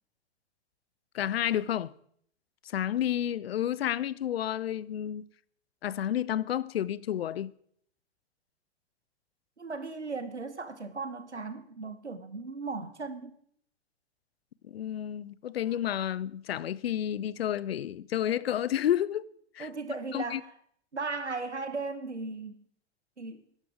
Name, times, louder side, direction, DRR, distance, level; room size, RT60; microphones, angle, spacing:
voice 1, 1.1-1.9 2.6-5.3 5.8-7.5 14.6-19.2 19.5-19.7 20.1-20.4, left 11 dB, 60° left, 0.6 m, -30 dB
voice 2, 9.6-13.4 19.6-20.5 20.9-22.6 23.2-23.4, right 4 dB, 85° right, 1.1 m, -37 dB
13.0 x 11.0 x 4.8 m
figure-of-eight pair, 100°, 34 cm